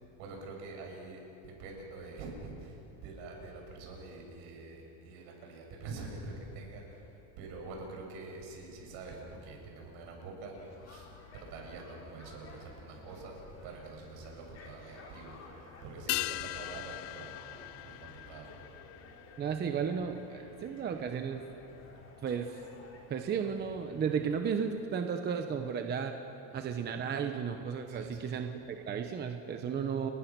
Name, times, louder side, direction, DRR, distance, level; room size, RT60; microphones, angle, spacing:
voice 1, 0.2-10.6 10.8-11.1 11.3-15.4 15.8-18.6 26.5-26.8 27.9-28.3, right 3 dB, 65° right, 0 dB, 7.6 m, -46 dB
sound 1, 10.5-24.6, left 3 dB, 30° left, 4.3 m, -54 dB
sound 2, 16.1-20.8 21.1-21.2, left 19 dB, 50° left, 0.6 m, -40 dB
voice 2, 19.4-21.5 22.2-22.6 23.1-26.1 26.5-30.1, right 7 dB, 20° right, 5 dB, 0.9 m, -34 dB
29.5 x 23.0 x 6.1 m, 2.9 s
cardioid pair, 165°, 48 cm